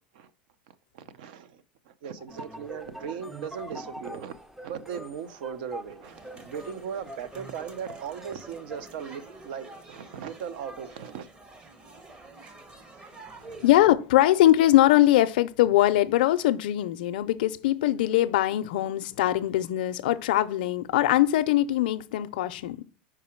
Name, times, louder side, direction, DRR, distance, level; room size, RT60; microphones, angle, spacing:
voice 1, 0.7-4.3 4.6-11.3 13.4-13.5, right 7 dB, 70° right, 0.6 m, -38 dB
sound 1, 2.3-9.0, right 1 dB, 5° right, 0.4 m, -44 dB
sound 2, 6.0-13.9, right 2 dB, 20° right, 0.8 m, -48 dB
voice 2, 13.6-22.8, left 14 dB, 80° left, 0.4 m, -22 dB
4.9 x 4.7 x 4.4 m
supercardioid pair, 140°, 5 cm